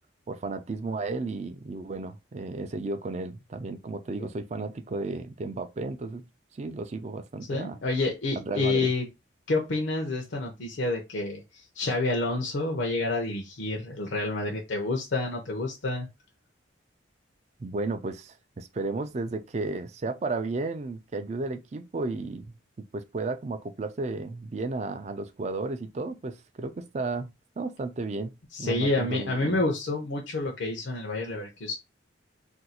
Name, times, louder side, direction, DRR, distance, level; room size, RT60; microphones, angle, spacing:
voice 1, 0.3-6.2 6.5-7.8 8.4-8.9 17.6-27.3 27.6-28.3 28.6-29.6, right 3 dB, 35° right, 0.3 m, -33 dB
voice 2, 7.5-9.1 9.5-16.1 28.5-31.7, left 2 dB, 70° left, 0.6 m, -29 dB
2.6 x 2.3 x 4.1 m
head